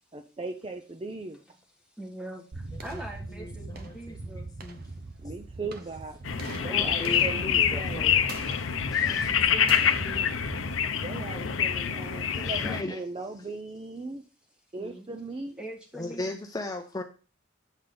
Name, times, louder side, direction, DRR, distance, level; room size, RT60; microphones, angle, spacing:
voice 1, 0.1-1.4 5.2-6.2 6.6-8.0 11.0-14.2 14.7-15.6, right 3 dB, 25° right, 0.5 m, -38 dB
voice 2, 2.0-4.5 6.2-7.5 9.0-10.3 14.8-15.3 15.6-16.4, right 1 dB, 5° right, 1.5 m, -43 dB
sound 1, 2.5-11.7, right 3 dB, 50° right, 0.8 m, -42 dB
voice 3, 3.3-4.8 6.7-8.2 8.5-8.6 8.9-9.4 12.3-13.0 15.9-17.0, left 2 dB, 20° left, 0.6 m, -38 dB
sound 2, 6.3-12.8, left 8 dB, 75° left, 0.6 m, -26 dB
8.1 x 3.9 x 5.1 m
head